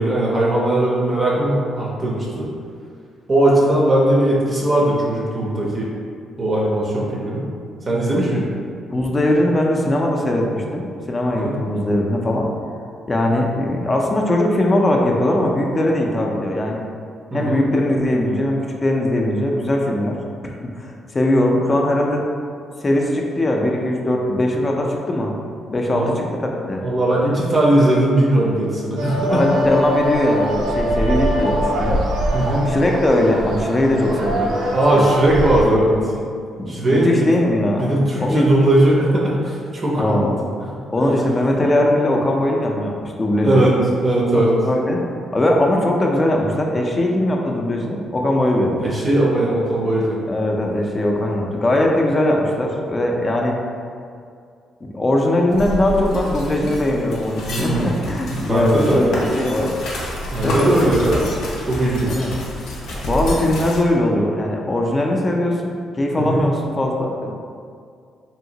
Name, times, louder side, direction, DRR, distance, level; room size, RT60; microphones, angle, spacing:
voice 1, 0.0-2.5 3.3-5.9 6.4-7.5 7.9-8.5 11.2-11.6 17.3-17.6 25.9-26.1 26.8-29.4 32.3-32.7 34.7-35.9 36.7-37.3 37.8-40.3 41.0-41.1 43.4-43.7 44.0-44.5 48.8-50.2 57.5-57.9 58.3-59.0 60.3-61.3 61.7-62.3 66.1-66.4, right 1 dB, 35° right, -4 dB, 0.5 m, -18 dB
voice 2, 8.9-12.5 13.1-16.8 17.3-20.2 20.4-22.3 22.8-25.3 25.7-26.8 29.3-32.0 32.7-34.6 34.9-35.0 35.6-36.1 36.6-37.9 38.2-38.5 40.0-40.4 40.9-43.7 44.3-45.0 45.3-48.8 50.3-53.6 54.9-59.7 60.4-60.9 62.1-62.3 63.0-67.3, left 1 dB, 30° left, 0 dB, 0.4 m, -20 dB
sound 1, 29.0-35.6, right 1 dB, 90° right, 0.5 m, -23 dB
sound 2, 55.5-63.8, left 1 dB, 85° left, 0.6 m, -29 dB
2.8 x 2.8 x 2.7 m, 2.3 s
cardioid pair, 90°, 0 cm